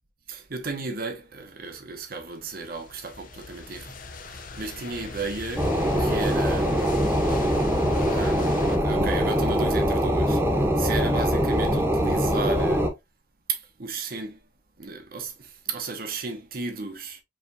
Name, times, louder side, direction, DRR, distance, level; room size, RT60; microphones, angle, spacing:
voice 1, 0.3-6.8 8.1-12.9 13.5-14.4 14.8-17.2, right 4 dB, 55° right, 1.0 m, -34 dB
sound 1, 2.4-8.8, left 3 dB, 50° left, 0.7 m, -39 dB
sound 2, 5.6-12.9, equal, 15° right, 1.0 m, -23 dB
5.0 x 3.2 x 2.7 m
head